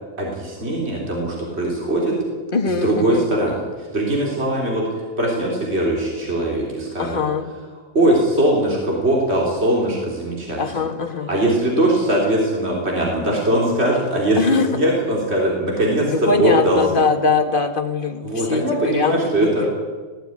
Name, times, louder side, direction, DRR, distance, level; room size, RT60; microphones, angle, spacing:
voice 1, 0.2-2.1 2.7-7.2 7.9-10.6 11.3-17.0 18.2-19.7, right 1 dB, 50° right, -2 dB, 4.0 m, -21 dB
voice 2, 2.5-3.3 7.0-7.5 10.6-11.3 14.4-14.7 16.0-19.7, left 4 dB, 40° left, 4 dB, 1.9 m, -21 dB
19.0 x 15.0 x 9.7 m, 1.4 s
omnidirectional pair, 1.4 m